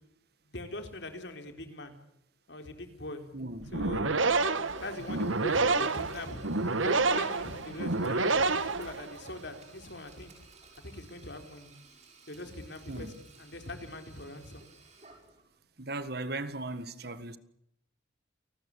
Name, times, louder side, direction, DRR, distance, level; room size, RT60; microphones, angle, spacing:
voice 1, 0.5-1.9 2.5-3.2 3.7-4.3 4.8-6.4 6.8-10.3 10.8-11.7 12.3-13.1 13.4-14.6, left 1 dB, 60° left, 4.1 m, -41 dB
voice 2, 3.3-3.7 12.9-13.2 15.8-17.4, right 2 dB, 50° right, 1.6 m, -37 dB
Sink (filling or washing), 3.6-15.6, right 2 dB, 35° right, 8.0 m, -55 dB
sound 1, 3.6-9.4, right 3 dB, 85° right, 1.6 m, -28 dB
29.5 x 20.0 x 8.6 m
head